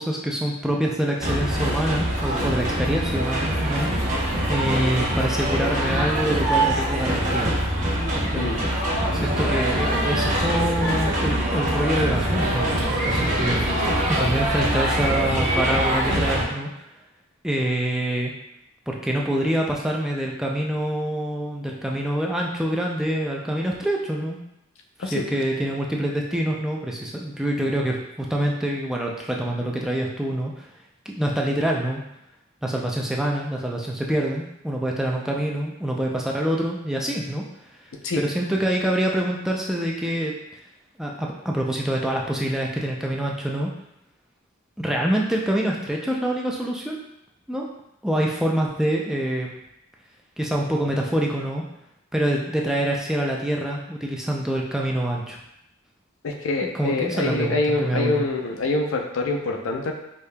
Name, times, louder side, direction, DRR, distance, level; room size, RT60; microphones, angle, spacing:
voice 1, 0.0-3.9 4.5-7.5 8.1-8.5 9.1-13.6 14.1-16.9 17.4-18.3 18.9-24.4 25.0-30.7 31.1-32.0 32.6-37.7 38.2-40.3 41.0-43.7 44.8-47.0 47.5-47.7 48.0-49.5 50.4-51.6 52.1-55.4 56.6-58.2, right 1 dB, 5° right, -2 dB, 0.3 m, -26 dB
sound 1, 1.2-16.5, right 1 dB, 40° right, 0.8 m, -23 dB
voice 2, 56.2-59.9, left 2 dB, 70° left, 2 dB, 0.5 m, -25 dB
4.9 x 2.7 x 2.2 m, 0.82 s
head